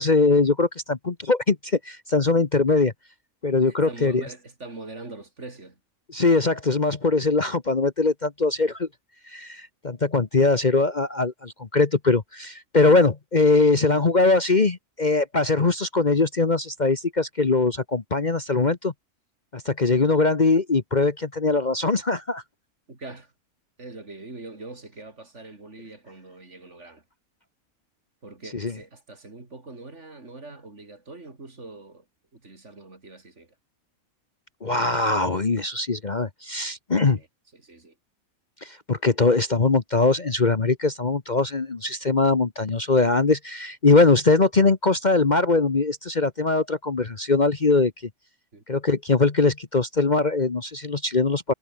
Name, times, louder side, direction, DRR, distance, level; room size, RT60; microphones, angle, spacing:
voice 1, 0.0-2.9 3.4-4.2 6.1-8.9 9.3-18.9 19.5-22.4 28.5-28.7 34.6-37.2 38.6-47.9 48.7-51.5, left 3 dB, 35° left, 1.3 m, -21 dB
voice 2, 3.7-5.8 22.9-23.3 23.8-27.0 28.2-32.0 32.3-33.5 37.1-37.3 37.5-37.9 48.5-48.6, right 3 dB, 55° right, 3.9 m, -42 dB
omnidirectional pair, 1.5 m